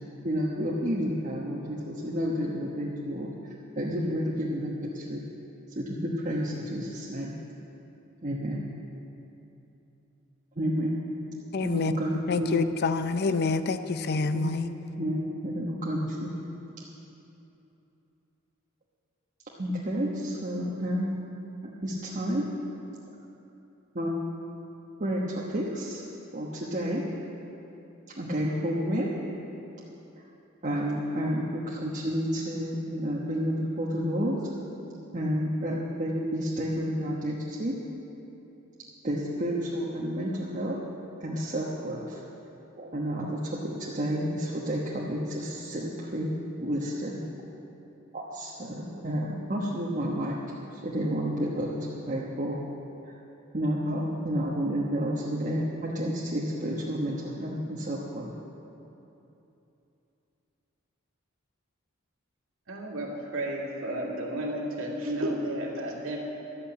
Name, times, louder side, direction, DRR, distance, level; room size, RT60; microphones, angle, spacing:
voice 1, 0.2-3.3 3.8-5.2 5.7-7.4 8.2-8.6 10.6-11.0 11.6-12.6 14.3-14.5 15.0-16.3 19.6-21.2 21.6-22.5 23.9-24.1 25.0-26.0 26.3-27.1 28.2-29.1 30.6-34.4 35.1-37.8 39.0-40.8 41.2-42.2 42.8-46.3 46.6-47.2 48.3-50.4 50.8-52.6 53.5-58.3, equal, 40° right, -5 dB, 1.2 m, -30 dB
voice 2, 11.5-11.9 12.3-14.7, left 4 dB, 50° left, 10 dB, 0.6 m, -27 dB
voice 3, 62.7-66.2, right 1 dB, 80° right, -2 dB, 2.3 m, -32 dB
12.5 x 8.6 x 8.3 m, 2.9 s
head